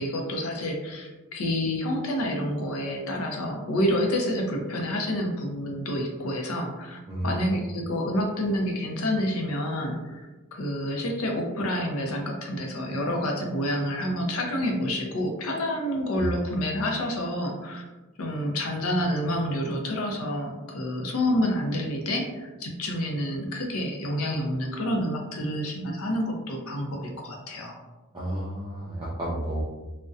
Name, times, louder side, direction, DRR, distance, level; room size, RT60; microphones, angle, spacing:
voice 1, 0.0-17.8 18.2-27.8, equal, 70° left, 1 dB, 0.5 m, -28 dB
voice 2, 7.1-7.5 16.1-16.3 28.1-29.6, right 1 dB, 20° right, -8 dB, 0.4 m, -31 dB
2.5 x 2.1 x 2.3 m, 1.2 s
head